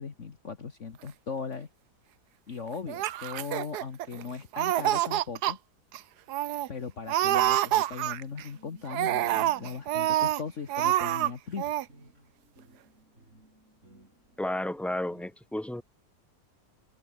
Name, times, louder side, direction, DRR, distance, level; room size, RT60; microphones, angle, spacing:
voice 1, 0.0-1.7 2.5-5.6 6.7-11.7, left 5 dB, 50° left, 1.8 m, -38 dB
Laughter, 2.9-4.2 4.5-5.5 5.9-6.0 6.3-6.7 7.1-8.4 8.9-10.4 10.7-11.3 11.6-11.9, right 13 dB, 80° right, 1.3 m, -27 dB
sound 1, 8.5-15.3, right 1 dB, 45° right, 8.5 m, -57 dB
voice 2, 14.4-15.8, left 1 dB, ahead, 2.8 m, -32 dB
omnidirectional pair, 1.7 m